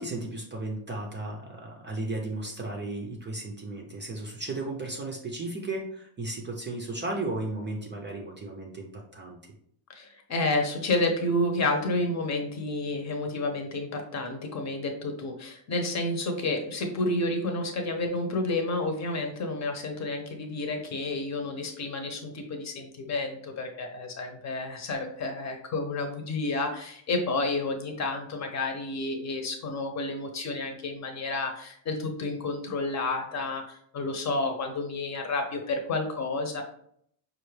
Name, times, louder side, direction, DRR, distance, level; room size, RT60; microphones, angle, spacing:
voice 1, 0.0-9.4, right 2 dB, 25° right, 1 dB, 0.6 m, -35 dB
voice 2, 9.9-36.6, left 2 dB, 35° left, 4 dB, 0.9 m, -30 dB
5.2 x 2.5 x 3.2 m, 0.67 s
cardioid pair, 120°, 47 cm